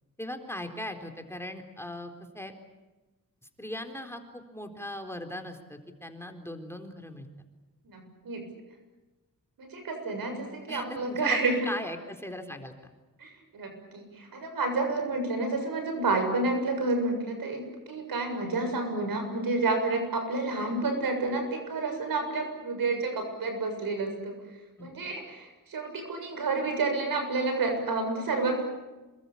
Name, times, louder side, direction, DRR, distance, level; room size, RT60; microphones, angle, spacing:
voice 1, 0.2-2.5 3.6-7.3 10.7-11.4 11.7-12.9 24.8-25.1, left 1 dB, 5° left, 5 dB, 4.1 m, -39 dB
voice 2, 7.8-8.4 9.6-11.7 13.2-24.3 24.8-28.6, right 3 dB, 85° right, 5 dB, 7.2 m, -30 dB
27.5 x 22.5 x 8.6 m, 1.1 s
cardioid pair, 70°, 34 cm